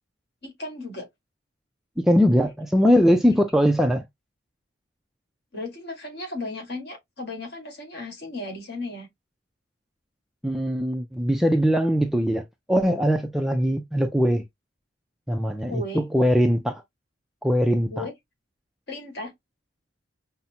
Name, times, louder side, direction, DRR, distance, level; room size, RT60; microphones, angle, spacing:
voice 1, 0.4-1.1 5.5-9.1 15.7-16.0 17.9-18.1 18.9-19.3, left 2 dB, 50° left, 1.6 m, -35 dB
voice 2, 2.0-4.0 10.4-14.4 15.3-16.8 17.4-18.1, equal, ahead, 0.3 m, -21 dB
5.6 x 2.0 x 2.7 m
head